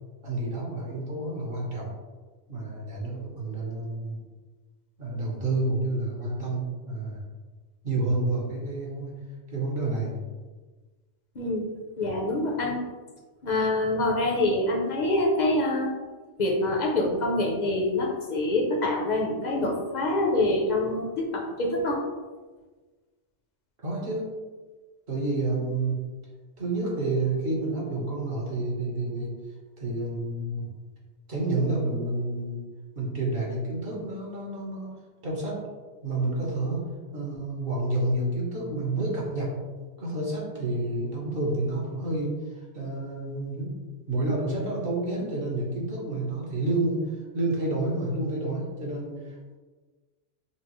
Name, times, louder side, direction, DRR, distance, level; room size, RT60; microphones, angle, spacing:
voice 1, 0.2-1.9 2.5-4.2 5.0-7.2 7.8-9.1 9.5-10.1 23.8-24.3 25.1-26.0 26.6-29.3 29.8-30.6 31.3-32.6 32.9-34.9 35.2-35.6 36.0-36.8 37.1-39.5 40.0-43.7 44.1-47.0 47.3-49.6, right 2 dB, 50° right, -3 dB, 1.1 m, -29 dB
voice 2, 11.3-11.7 12.0-12.8 13.4-15.9 16.4-22.0, left 2 dB, 45° left, -1 dB, 0.7 m, -25 dB
5.8 x 2.0 x 3.0 m, 1.3 s
omnidirectional pair, 1.3 m